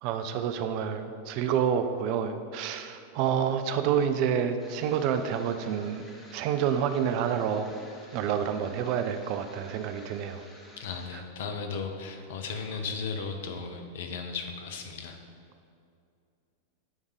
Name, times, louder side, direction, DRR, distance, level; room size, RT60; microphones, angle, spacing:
voice 1, 0.0-6.0 6.3-7.7 8.1-10.4 11.1-11.2, right 8 dB, 45° right, 8 dB, 0.4 m, -28 dB
sound 1, 4.6-11.1, left 1 dB, 15° left, 1.4 m, -53 dB
voice 2, 10.8-15.2, left 5 dB, 55° left, 5 dB, 0.8 m, -36 dB
9.8 x 3.6 x 4.9 m, 2.4 s
figure-of-eight pair, 90°, 0 cm